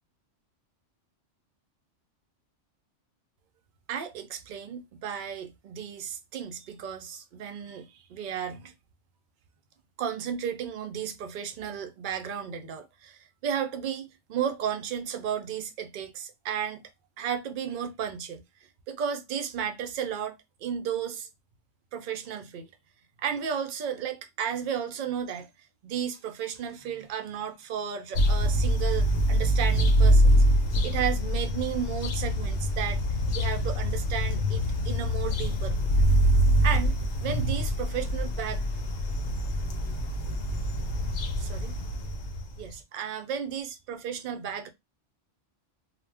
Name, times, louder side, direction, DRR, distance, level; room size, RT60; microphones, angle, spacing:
voice 1, 3.9-8.7 10.0-16.9 17.2-18.4 18.9-20.4 20.6-21.3 21.9-22.7 23.2-25.5 25.8-30.4 30.8-33.0 33.3-35.7 36.6-36.9 37.2-38.6 41.4-41.7 42.6-44.7, right 8 dB, 60° right, 0.5 m, -33 dB
sound 1, 28.1-42.7, equal, 70° left, 0.9 m, -25 dB
2.3 x 2.0 x 3.3 m
omnidirectional pair, 1.2 m